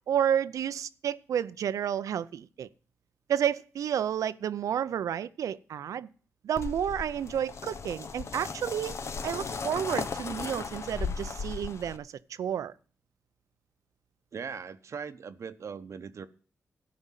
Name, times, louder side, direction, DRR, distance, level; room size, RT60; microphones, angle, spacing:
voice 1, 0.1-2.7 3.3-6.1 6.4-8.9 9.2-12.1 12.4-12.7, right 9 dB, 90° right, 0.6 m, -30 dB
sound 1, 6.6-12.0, left 5 dB, 60° left, 1.0 m, -36 dB
voice 2, 14.3-16.3, right 6 dB, 65° right, 0.8 m, -40 dB
14.0 x 5.3 x 7.3 m
cardioid pair, 75°, 5 cm